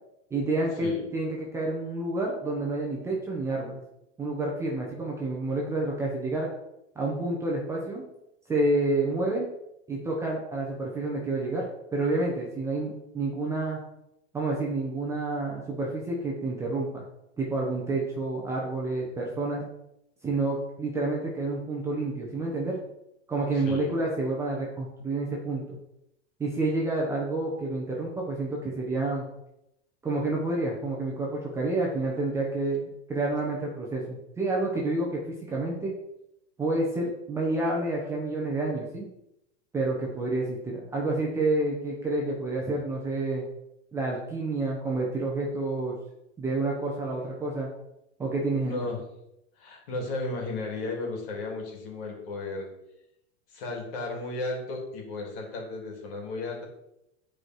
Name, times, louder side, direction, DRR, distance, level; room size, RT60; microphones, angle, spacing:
voice 1, 0.3-3.8 4.2-6.5 6.9-8.1 8.5-9.5 9.9-11.7 11.9-13.8 14.3-17.0 17.4-19.7 20.2-22.8 23.3-25.8 26.4-29.2 30.0-35.9 36.6-39.1 39.7-43.4 43.9-45.9 46.4-47.7 48.2-48.8, right 2 dB, 10° right, -3 dB, 1.0 m, -29 dB
voice 2, 23.5-23.9 48.6-49.0 49.6-52.7 53.5-56.6, left 2 dB, 55° left, 0 dB, 3.4 m, -34 dB
10.5 x 5.0 x 4.6 m, 0.84 s
supercardioid pair, 170°, 34 cm